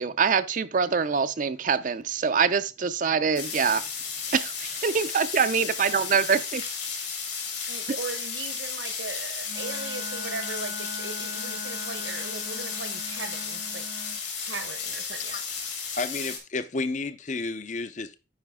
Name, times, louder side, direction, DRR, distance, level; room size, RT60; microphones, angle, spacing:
voice 1, 0.0-3.8 4.3-6.6 7.9-8.0, right 6 dB, 45° right, 0.4 m, -24 dB
sound 1, 3.3-16.4, left 6 dB, 65° left, 2.9 m, -34 dB
voice 2, 7.7-13.9 14.4-15.4, right 4 dB, 75° right, 1.0 m, -38 dB
Wind instrument woodwind instrument, 9.4-14.2, left 3 dB, 85° left, 4.2 m, -41 dB
voice 3, 16.0-18.2, left 3 dB, 40° left, 0.6 m, -31 dB
9.4 x 5.0 x 3.6 m
head